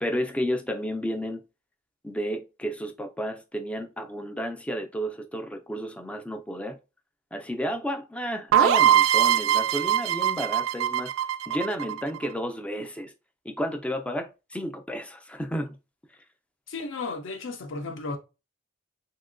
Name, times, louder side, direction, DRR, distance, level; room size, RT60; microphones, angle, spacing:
voice 1, 0.0-1.4 2.0-6.8 7.3-11.1 11.5-13.1 13.4-15.8, equal, 5° left, 0.3 m, -32 dB
sound 1, 8.5-12.3, right 10 dB, 75° right, 0.3 m, -22 dB
voice 2, 16.7-18.2, left 3 dB, 65° left, 0.5 m, -34 dB
2.9 x 2.8 x 2.4 m
head